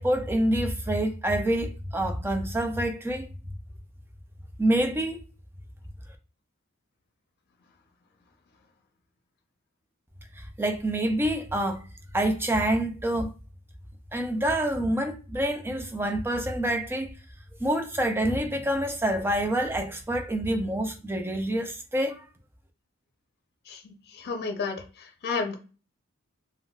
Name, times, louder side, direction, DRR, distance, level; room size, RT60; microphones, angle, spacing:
voice 1, 0.0-3.3 4.6-5.2 10.4-11.9 12.1-13.3 14.1-17.1 17.6-22.2, right 1 dB, 10° right, 0.4 m, -27 dB
voice 2, 23.7-25.6, left 4 dB, 50° left, 0.6 m, -32 dB
3.8 x 2.0 x 2.3 m
head